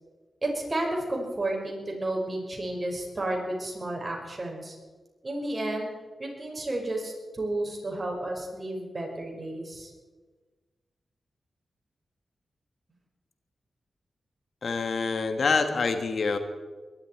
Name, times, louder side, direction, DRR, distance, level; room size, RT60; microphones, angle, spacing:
voice 1, 0.4-4.8 5.2-5.9 6.2-9.9, right 1 dB, 40° right, 0 dB, 5.6 m, -32 dB
voice 2, 14.6-16.4, left 4 dB, 70° left, 8 dB, 1.4 m, -26 dB
22.0 x 11.5 x 4.7 m, 1.3 s
supercardioid pair, 40°, 0 cm